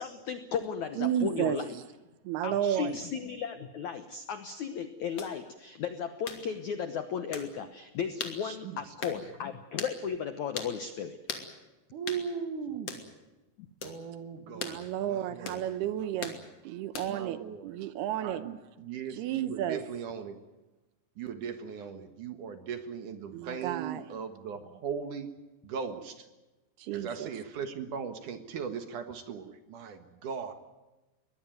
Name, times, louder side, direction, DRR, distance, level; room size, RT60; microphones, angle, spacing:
voice 1, 0.0-1.8 2.4-11.2 13.6-13.7, left 7 dB, 75° left, 9 dB, 1.7 m, -35 dB
voice 2, 1.0-1.6 2.2-2.9 14.5-16.3 16.6-18.6 19.1-19.8 23.3-24.1 26.8-27.3, right 11 dB, 75° right, 13 dB, 2.7 m, -32 dB
sound 1, 5.2-5.3 6.3-6.4 7.3-7.5 8.2-8.4 9.0-9.2 9.8-10.0 10.6-10.7 11.3-11.5 12.1-12.2 12.9-13.1 13.8-14.0 14.6-14.8 15.5-15.6 16.2-16.4 16.9-17.2, left 5 dB, 40° left, 3.1 m, -38 dB
voice 3, 8.4-8.8 11.9-13.0 13.8-16.1 17.1-17.8 18.2-20.4 21.2-25.3 25.6-26.3 26.9-30.5, right 6 dB, 60° right, 9 dB, 2.5 m, -39 dB
23.0 x 19.5 x 9.2 m, 1.1 s
omnidirectional pair, 5.0 m